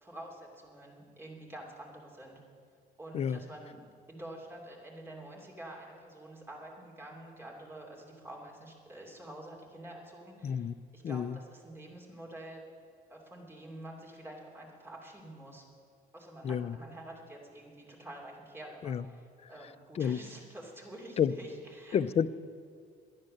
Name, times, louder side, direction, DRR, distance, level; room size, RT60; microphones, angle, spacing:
voice 1, 0.0-2.4 3.0-3.8 4.1-12.6 13.1-15.6 16.1-22.0, right 1 dB, 15° right, -1 dB, 2.7 m, -48 dB
voice 2, 10.4-10.7 11.0-11.4 16.4-16.8 18.8-19.0 19.4-19.5 19.9-20.2 21.2-21.3 21.9-22.3, left 8 dB, 35° left, 14 dB, 0.4 m, -30 dB
11.0 x 10.5 x 6.5 m, 2.1 s
cardioid pair, 110°, 17 cm